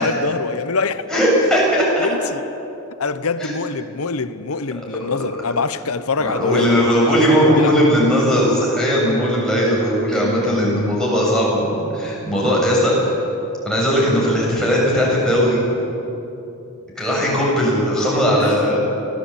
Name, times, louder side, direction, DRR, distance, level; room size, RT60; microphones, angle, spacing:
voice 1, 0.0-1.0 2.0-2.4 3.0-7.8 18.4-18.6, left 4 dB, 85° left, 0.9 m, -24 dB
voice 2, 1.1-2.1 3.4-3.5 6.2-13.2 13.6-15.6 17.0-18.8, equal, 5° left, 7.1 m, -18 dB
24.5 x 17.0 x 8.5 m
head